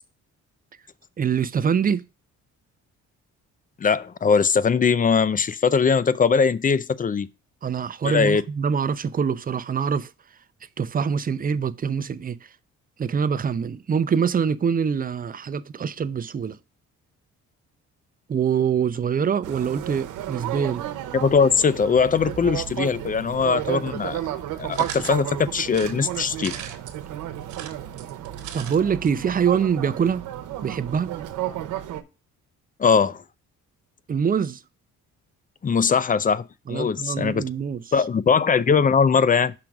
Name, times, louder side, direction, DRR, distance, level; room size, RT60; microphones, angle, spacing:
voice 1, 1.2-2.0 7.6-10.1 10.8-12.4 13.0-16.6 18.3-20.8 28.5-30.2 30.6-31.1 34.1-34.6 36.7-37.8, right 7 dB, 30° right, 0.5 m, -24 dB
voice 2, 3.8-7.3 8.0-8.4 21.1-24.2 24.6-26.5 32.8-33.2 35.6-37.5 37.9-39.5, left 5 dB, 30° left, 0.5 m, -21 dB
sound 1, 19.4-32.0, right 12 dB, 90° right, 0.9 m, -32 dB
sound 2, 24.7-25.2 25.7-27.0 27.4-28.8 29.1-29.2 29.4-29.5, right 9 dB, 75° right, 1.3 m, -38 dB
5.9 x 3.8 x 6.0 m
cardioid pair, 90°, 30 cm